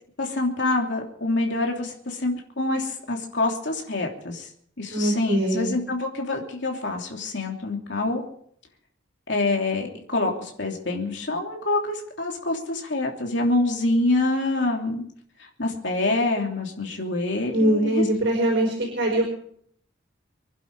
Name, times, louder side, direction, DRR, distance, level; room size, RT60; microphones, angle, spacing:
voice 1, 0.2-4.5 4.8-8.2 9.3-15.0 15.4-18.0, left 2 dB, 70° left, 1 dB, 3.2 m, -26 dB
voice 2, 4.9-5.7 17.5-19.2, right 1 dB, 65° right, 1 dB, 4.8 m, -22 dB
25.0 x 11.0 x 4.8 m, 0.64 s
head